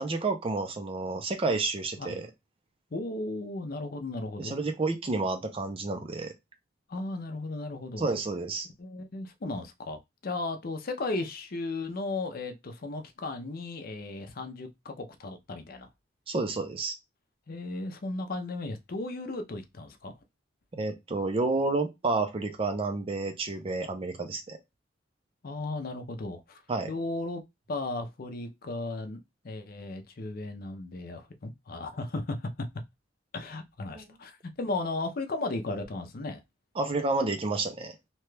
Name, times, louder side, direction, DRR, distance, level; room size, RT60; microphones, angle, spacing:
voice 1, 0.0-2.3 4.4-6.3 8.0-8.7 16.3-16.9 20.7-24.6 26.7-26.9 33.9-34.0 36.8-38.0, right 3 dB, 30° right, 0.5 m, -30 dB
voice 2, 2.9-4.6 6.9-8.1 8.8-15.9 17.5-20.1 25.4-26.6 26.9-27.4 27.7-29.2 29.4-32.5 33.3-36.4, left 2 dB, 50° left, 0.5 m, -35 dB
2.9 x 2.3 x 3.1 m
head